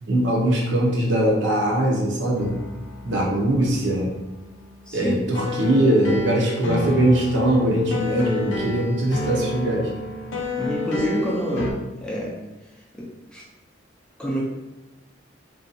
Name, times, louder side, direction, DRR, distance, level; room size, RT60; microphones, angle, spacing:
voice 1, 0.0-2.6 3.0-4.2 4.9-9.9, right 1 dB, 75° right, -2 dB, 0.6 m, -21 dB
sound 1, 2.3-11.7, left 1 dB, 90° left, 0.5 m, -31 dB
voice 2, 4.9-5.2 10.6-12.4 12.9-13.1 13.3-13.4 14.2-14.4, equal, 5° left, -4 dB, 0.4 m, -27 dB
2.6 x 2.2 x 2.6 m, 1.1 s
head